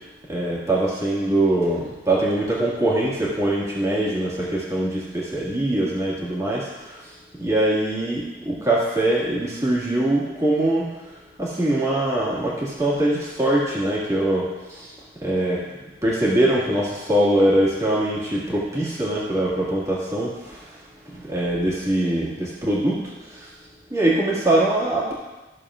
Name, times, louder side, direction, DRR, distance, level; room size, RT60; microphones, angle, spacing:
voice 1, 0.3-7.0 7.4-10.9 11.4-14.9 15.2-15.6 16.0-20.6 21.1-23.0 23.3-23.5 23.9-25.1, right 1 dB, 20° right, -6 dB, 1.9 m, -22 dB
13.5 x 6.7 x 2.5 m, 1.1 s
head